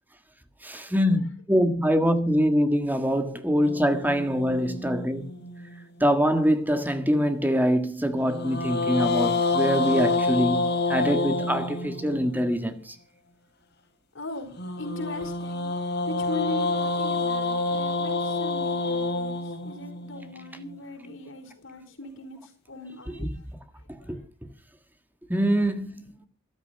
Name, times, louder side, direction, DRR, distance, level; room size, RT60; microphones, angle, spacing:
voice 1, 0.6-5.2 6.0-10.6 10.9-12.9 24.1-24.2 25.3-26.0, equal, 10° right, 1.7 m, -24 dB
sound 1, 3.6-6.0 8.3-12.4 14.6-20.8, left 3 dB, 55° left, 4.3 m, -28 dB
voice 2, 14.1-15.7 16.1-23.5 24.0-24.1, left 2 dB, 90° left, 4.8 m, -39 dB
14.0 x 12.5 x 5.7 m
head